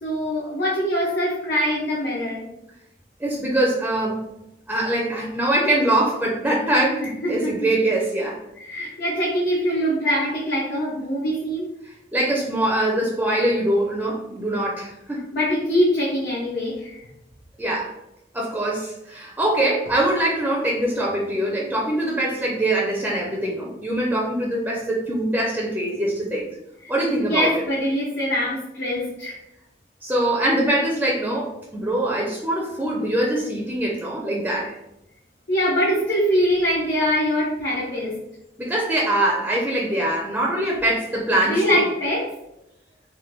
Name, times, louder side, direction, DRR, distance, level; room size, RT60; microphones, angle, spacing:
voice 1, 0.0-2.4 7.2-7.7 8.6-11.7 15.3-16.9 27.2-29.4 35.5-38.1 41.4-42.3, equal, 80° left, -6 dB, 0.7 m, -23 dB
voice 2, 3.2-4.3 4.7-8.4 11.8-15.3 17.6-17.9 18.3-26.5 26.9-27.7 30.0-34.8 38.6-41.8, right 1 dB, 10° right, -3 dB, 0.4 m, -23 dB
3.3 x 2.1 x 3.0 m, 0.85 s
head